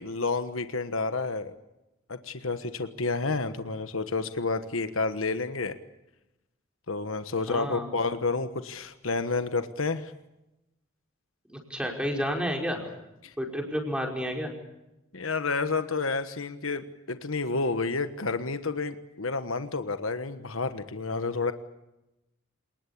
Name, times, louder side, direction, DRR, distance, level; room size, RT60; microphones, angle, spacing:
voice 1, 0.0-1.5 2.1-5.8 6.9-10.1 13.2-13.3 15.1-21.5, left 3 dB, 75° left, 10 dB, 1.3 m, -30 dB
voice 2, 7.5-7.9 11.5-12.9 13.4-14.5, equal, 5° right, 2 dB, 5.1 m, -31 dB
28.0 x 20.0 x 8.5 m, 0.94 s
head